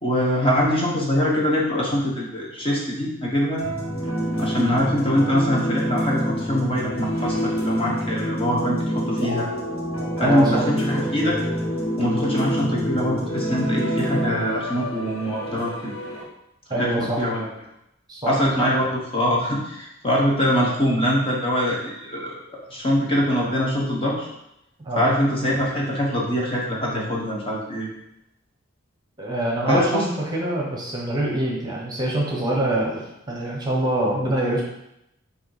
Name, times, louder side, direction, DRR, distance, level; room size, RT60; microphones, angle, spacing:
voice 1, 0.0-3.6 4.4-9.5 10.2-11.4 12.0-15.9 16.8-17.5 18.3-24.3 25.0-27.9 29.7-30.1, equal, 25° left, -3 dB, 1.2 m, -23 dB
sound 1, 3.6-16.2, equal, 85° left, 1.6 m, -27 dB
voice 2, 10.2-10.6 16.7-17.3 18.1-18.3 18.6-18.7 24.8-25.1 29.2-34.6, right 1 dB, 20° right, -3 dB, 1.1 m, -25 dB
6.8 x 2.9 x 4.9 m, 0.83 s
head